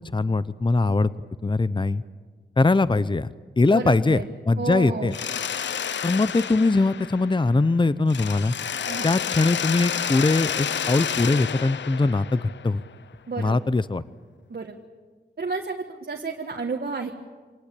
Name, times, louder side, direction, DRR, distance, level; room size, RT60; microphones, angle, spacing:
voice 1, 0.1-1.1 1.4-2.0 2.6-3.3 3.6-5.2 6.0-8.5 9.0-12.8 13.4-14.0, left 3 dB, 25° left, 16 dB, 0.8 m, -21 dB
voice 2, 3.7-4.2 4.6-5.1 8.9-9.1 13.3-13.6 14.5-14.7 15.4-17.1, right 4 dB, 55° right, 1 dB, 1.7 m, -31 dB
Mechanisms, 5.1-7.7 8.1-12.9, left 8 dB, 80° left, 0.6 m, -30 dB
26.5 x 19.0 x 8.4 m, 1.4 s
cardioid pair, 45°, 19 cm